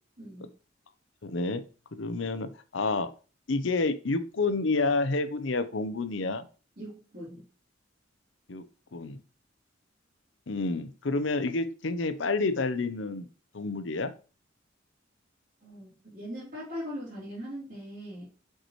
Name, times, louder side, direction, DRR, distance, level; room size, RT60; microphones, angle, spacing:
voice 1, 0.2-0.5 6.8-7.4 15.6-18.3, equal, 50° right, -11 dB, 3.3 m, -40 dB
voice 2, 1.2-1.6 1.9-3.1 3.5-6.4 8.5-8.6 8.9-9.2 10.5-13.3 13.5-14.1, left 3 dB, 70° left, 11 dB, 0.7 m, -29 dB
6.6 x 4.7 x 3.1 m, 0.35 s
head